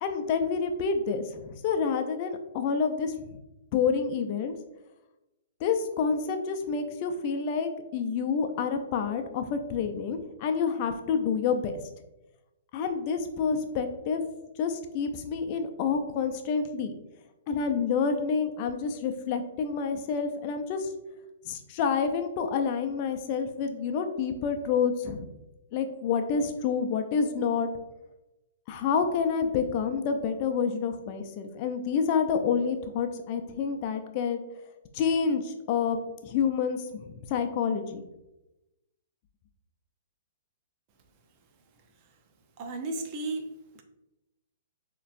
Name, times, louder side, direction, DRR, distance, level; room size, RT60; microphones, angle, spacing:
voice 1, 0.0-3.1 3.7-4.5 5.6-11.8 12.7-14.2 14.6-16.9 17.5-20.9 21.5-25.3 25.7-27.7 28.7-34.4 34.9-36.0 36.2-38.0, left 6 dB, 40° left, 6 dB, 0.5 m, -28 dB
voice 2, 42.6-43.8, right 2 dB, 40° right, 6 dB, 0.6 m, -34 dB
6.6 x 3.0 x 2.5 m, 0.95 s
hypercardioid pair, 130°, 0 cm